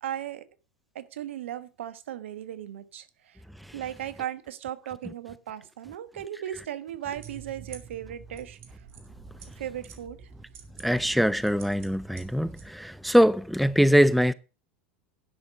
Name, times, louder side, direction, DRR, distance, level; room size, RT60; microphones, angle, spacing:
voice 1, 0.0-0.4 0.9-3.4 3.7-8.9 9.6-10.3, right 11 dB, 85° right, 1.2 m, -37 dB
sound 1, 7.2-12.7, right 6 dB, 40° right, 2.4 m, -48 dB
voice 2, 10.8-14.3, equal, ahead, 0.5 m, -22 dB
10.0 x 6.3 x 6.2 m
hypercardioid pair, 105°, 6 cm